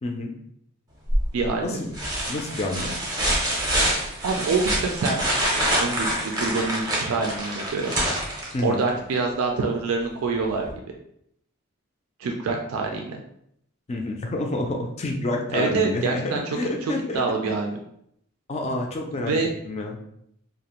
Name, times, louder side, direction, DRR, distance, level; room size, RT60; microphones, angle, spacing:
voice 1, 0.0-0.3 1.6-1.9 2.3-3.0 8.5-8.8 13.9-17.5 18.5-19.3 19.7-20.0, left 2 dB, 30° left, 1 dB, 0.3 m, -28 dB
sound 1, 1.1-1.5 1.9-8.9 10.7-10.8, right 1 dB, 20° right, 0.5 m, -26 dB
voice 2, 1.3-1.8 4.2-5.2 5.8-7.9 8.6-10.7 12.2-13.2 15.5-17.8 19.2-19.5, right 4 dB, 85° right, 2 dB, 0.4 m, -26 dB
2.4 x 2.0 x 2.9 m, 0.72 s
head